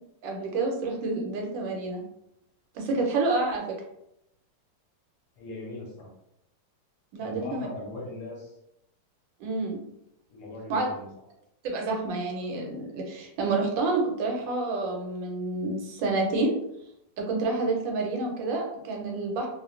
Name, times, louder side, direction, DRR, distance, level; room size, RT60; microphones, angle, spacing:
voice 1, 0.2-2.0 2.7-3.6 7.1-7.7 9.4-9.8 10.7-10.9 11.6-16.5 17.2-19.5, right 3 dB, 85° right, 0 dB, 1.4 m, -28 dB
voice 2, 5.4-6.1 7.2-8.6 10.3-11.2, left 2 dB, 70° left, -1 dB, 1.2 m, -40 dB
3.1 x 2.1 x 2.3 m, 0.80 s
omnidirectional pair, 2.0 m